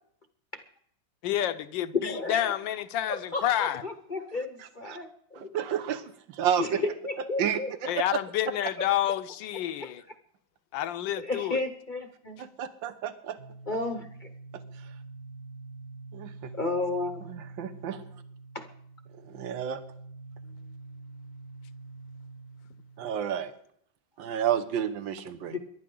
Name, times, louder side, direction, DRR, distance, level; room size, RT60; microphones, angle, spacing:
voice 1, 1.2-3.8 7.9-10.0 10.7-11.6, left 12 dB, 75° left, 1.4 m, -29 dB
voice 2, 1.9-2.5 3.1-5.5 6.6-7.7 8.8-8.9 9.8-9.9 11.2-12.4 13.7-14.3 16.5-17.3 18.5-18.7 25.5-25.6, left 2 dB, 35° left, 0.8 m, -32 dB
voice 3, 5.4-6.8 7.4-8.2 12.4-13.4 16.1-16.5 17.2-18.0 19.2-19.8 23.0-23.5 24.2-25.6, right 9 dB, 75° right, 1.7 m, -31 dB
sound 1, 13.4-23.2, right 3 dB, 55° right, 1.2 m, -46 dB
24.0 x 11.5 x 3.8 m
omnidirectional pair, 2.1 m